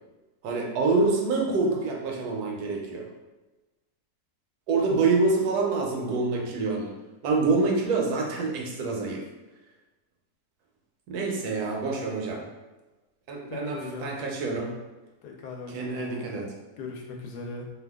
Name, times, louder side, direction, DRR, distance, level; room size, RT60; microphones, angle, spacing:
voice 1, 0.4-3.1 4.7-7.0 7.2-9.2 11.1-12.5 13.3-14.7 15.7-16.5, right 3 dB, 75° right, 0 dB, 1.1 m, -26 dB
voice 2, 13.5-14.1 15.2-16.2 16.8-17.7, left 3 dB, 80° left, 0 dB, 1.1 m, -39 dB
2.7 x 2.3 x 3.4 m, 1.2 s
omnidirectional pair, 1.7 m